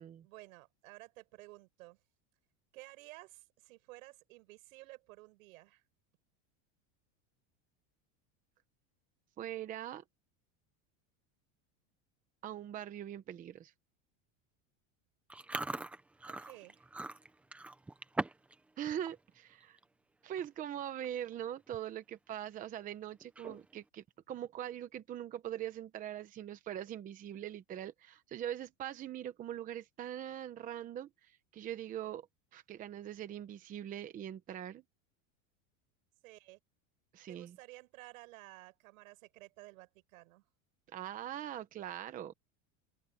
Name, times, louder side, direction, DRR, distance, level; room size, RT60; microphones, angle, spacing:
voice 1, 0.2-2.0 2.7-5.8 16.2-16.9 36.2-36.6 37.3-40.5, right 21 dB, 85° right, 7.5 m, -54 dB
voice 2, 9.4-10.0 12.4-13.7 18.8-19.8 20.2-32.3 32.5-34.8 37.1-37.6 40.9-42.3, right 11 dB, 20° right, 0.8 m, -42 dB
Chewing mastication, 15.3-18.6 18.9-19.2 19.6-19.8 20.6-20.7 20.9-21.3 21.7-21.8 23.2-23.8, right 2 dB, 5° right, 0.4 m, -41 dB
open air
cardioid pair, 175°, 40 cm